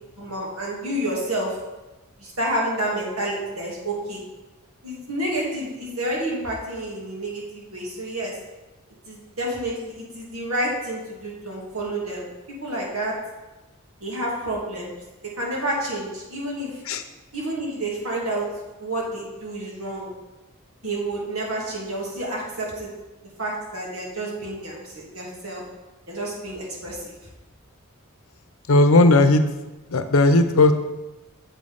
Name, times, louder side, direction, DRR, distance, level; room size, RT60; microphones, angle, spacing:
voice 1, 0.2-1.6 2.2-4.2 4.8-8.4 9.0-13.1 14.0-14.9 15.4-16.8 17.3-18.5 18.8-20.1 20.8-22.9 23.4-25.6 26.1-27.1, right 1 dB, 90° right, -3 dB, 2.5 m, -29 dB
voice 2, 28.7-29.4 29.9-30.7, left 2 dB, 75° left, 9 dB, 0.7 m, -16 dB
7.3 x 5.3 x 5.5 m, 1.1 s
head